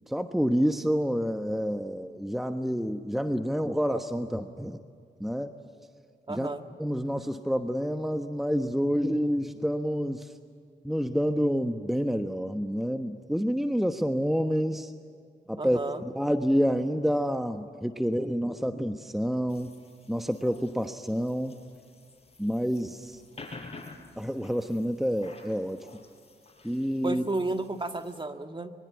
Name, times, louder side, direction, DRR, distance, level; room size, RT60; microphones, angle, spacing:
voice 1, 0.1-4.8 5.2-5.5 6.3-6.5 6.8-10.3 10.8-14.9 15.5-15.8 16.1-19.7 20.1-21.6 22.4-23.2 24.2-25.9 26.6-27.3, equal, ahead, 7 dB, 1.2 m, -28 dB
voice 2, 6.3-6.6 15.6-16.0 27.0-28.7, right 2 dB, 25° right, 7 dB, 1.7 m, -32 dB
sound 1, 19.5-28.2, left 3 dB, 35° left, 5.1 m, -50 dB
25.0 x 22.5 x 9.8 m, 2.1 s
cardioid pair, 55°, 18 cm